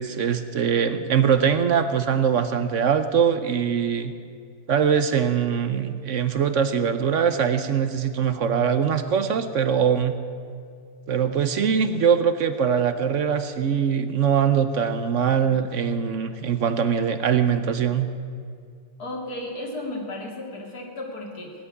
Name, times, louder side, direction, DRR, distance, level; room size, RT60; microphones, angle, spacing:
voice 1, 0.0-4.1 4.7-10.2 11.1-18.1, right 7 dB, 60° right, 10 dB, 0.8 m, -22 dB
voice 2, 19.0-21.5, left 1 dB, 55° left, 1 dB, 2.9 m, -34 dB
17.5 x 8.1 x 9.8 m, 2.2 s
omnidirectional pair, 2.0 m